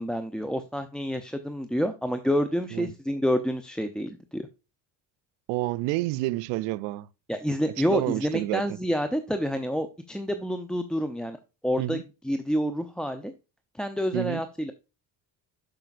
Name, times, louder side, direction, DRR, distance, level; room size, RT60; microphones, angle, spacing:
voice 1, 0.0-4.5 7.3-11.4 11.6-12.0 12.2-13.3 13.7-14.7, equal, ahead, 0.6 m, -28 dB
voice 2, 5.5-7.1 7.9-8.6 11.8-12.0 14.1-14.4, right 18 dB, 85° right, 0.6 m, -29 dB
12.0 x 5.1 x 2.5 m
supercardioid pair, 90°, 43 cm